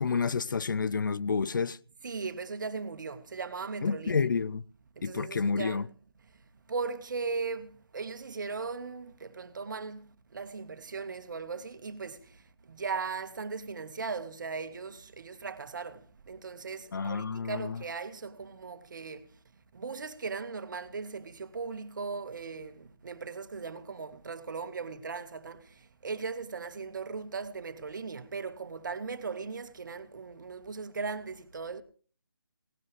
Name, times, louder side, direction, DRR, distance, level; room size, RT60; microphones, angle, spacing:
voice 1, 0.0-1.8 3.8-4.6 5.0-5.8 16.9-17.8, left 5 dB, 55° left, 0.6 m, -29 dB
voice 2, 2.0-4.3 5.0-5.8 6.3-19.4 19.7-31.8, right 4 dB, 55° right, 1.9 m, -38 dB
18.5 x 18.5 x 3.4 m
figure-of-eight pair, 160°, 12 cm